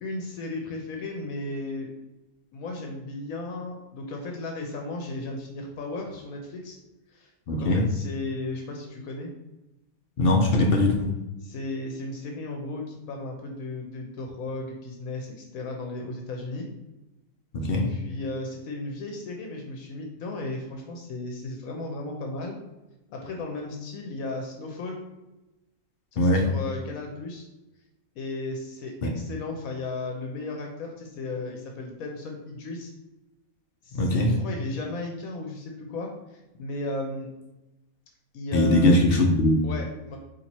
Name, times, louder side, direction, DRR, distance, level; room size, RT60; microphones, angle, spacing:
voice 1, 0.0-1.9 2.5-6.8 7.1-9.3 11.4-16.7 17.7-22.6 23.1-25.0 26.1-27.5 28.2-32.9 33.8-37.3 38.3-39.0 39.6-40.2, left 2 dB, 75° left, 2 dB, 1.1 m, -35 dB
voice 2, 7.5-7.8 10.2-11.1 17.5-17.9 26.2-26.5 29.0-29.1 33.9-34.3 38.5-39.6, left 1 dB, 55° left, 2 dB, 0.7 m, -21 dB
4.4 x 2.9 x 4.1 m, 0.99 s
omnidirectional pair, 1.5 m